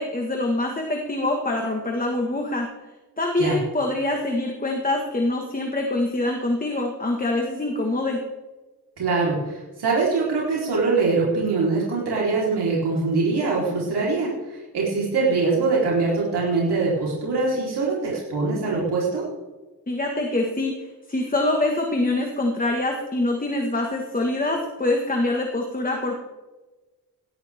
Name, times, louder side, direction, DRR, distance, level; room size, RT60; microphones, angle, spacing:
voice 1, 0.0-2.7 3.2-8.2 19.9-26.2, left 2 dB, 20° left, 1 dB, 1.7 m, -25 dB
voice 2, 9.0-19.3, right 3 dB, 85° right, -5 dB, 3.9 m, -23 dB
18.0 x 13.0 x 3.6 m, 1.2 s
wide cardioid pair, 135°, 39 cm